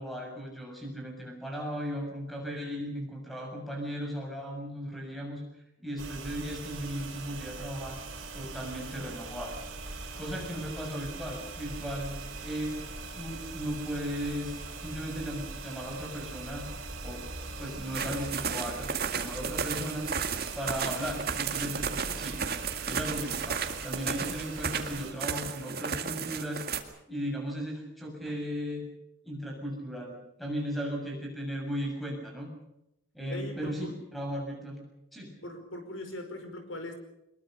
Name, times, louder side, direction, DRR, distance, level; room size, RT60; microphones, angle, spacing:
voice 1, 0.0-5.4 5.8-8.0 8.3-9.6 10.2-12.2 12.4-12.9 13.1-16.7 17.0-17.3 17.6-18.9 19.1-20.1 20.6-22.4 22.9-28.8 29.2-32.5 33.1-34.8 35.1-35.4, equal, ahead, 1 dB, 6.9 m, -36 dB
sound 1, 6.0-25.1, right 3 dB, 70° right, 4.9 m, -41 dB
sound 2, 17.9-26.8, right 6 dB, 45° right, 2.0 m, -34 dB
voice 2, 33.2-34.0 35.4-36.9, left 1 dB, 70° left, 6 dB, 5.0 m, -40 dB
23.0 x 22.0 x 6.7 m, 0.87 s
head